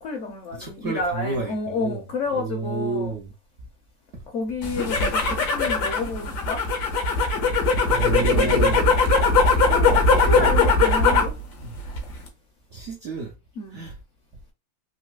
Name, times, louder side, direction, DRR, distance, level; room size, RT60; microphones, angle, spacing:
voice 1, 0.0-3.2 4.3-5.2 5.5-6.6 8.4-8.8 9.7-11.3 13.6-13.9, left 3 dB, 65° left, 0.8 m, -30 dB
voice 2, 0.5-2.0 2.3-3.3 4.1-4.2 7.9-9.0 9.5-9.6 9.9-10.5 11.6-11.8 12.7-13.3 13.7-14.0, right 3 dB, 70° right, 0.6 m, -31 dB
sound 1, 4.6-11.4 11.7-12.3, left 3 dB, 85° left, 1.5 m, -20 dB
3.9 x 2.6 x 2.3 m
omnidirectional pair, 1.8 m